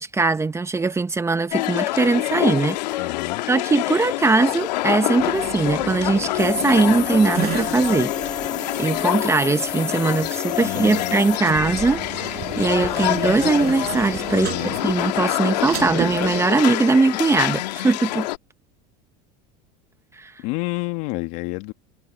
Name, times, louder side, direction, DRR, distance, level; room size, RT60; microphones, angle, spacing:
voice 1, 0.0-3.0 3.5-8.1 8.8-18.3 20.2-20.3, right 3 dB, 15° right, 1.1 m, -21 dB
sound 1, 1.5-18.4, left 18 dB, 90° left, 1.8 m, -26 dB
voice 2, 3.0-3.4 10.6-11.2 14.3-14.8 20.4-21.7, left 22 dB, 65° left, 2.0 m, -29 dB
sound 2, 5.2-16.4, right 15 dB, 50° right, 7.1 m, -34 dB
sound 3, 6.4-11.4, left 7 dB, 20° left, 0.7 m, -31 dB
supercardioid pair, 120°, 21 cm